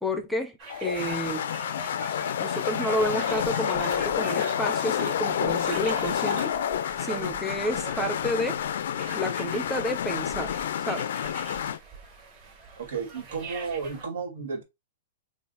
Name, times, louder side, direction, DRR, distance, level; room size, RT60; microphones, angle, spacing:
voice 1, 0.0-1.5 2.4-6.5 7.0-8.6 9.1-10.5 10.9-11.1, equal, 5° left, 0.5 m, -30 dB
sound 1, 0.6-14.0, right 4 dB, 35° right, 1.7 m, -44 dB
sound 2, 0.7-11.8, left 9 dB, 70° left, 0.3 m, -29 dB
sound 3, 3.1-4.1 4.3-6.6, right 5 dB, 55° right, 1.4 m, -42 dB
voice 2, 12.8-14.6, right 5 dB, 85° right, 1.7 m, -33 dB
3.4 x 2.4 x 3.8 m
hypercardioid pair, 145°, 0 cm